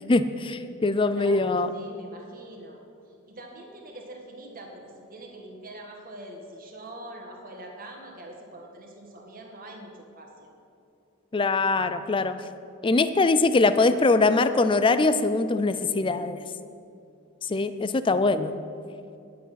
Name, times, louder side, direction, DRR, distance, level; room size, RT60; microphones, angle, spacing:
voice 1, 0.1-1.7 11.3-12.3 12.8-16.4 17.4-18.5, left 3 dB, 25° left, 12 dB, 0.4 m, -22 dB
voice 2, 1.1-2.8 3.0-10.5, right 1 dB, 40° right, 1 dB, 1.6 m, -44 dB
10.5 x 8.4 x 5.8 m, 2.6 s
head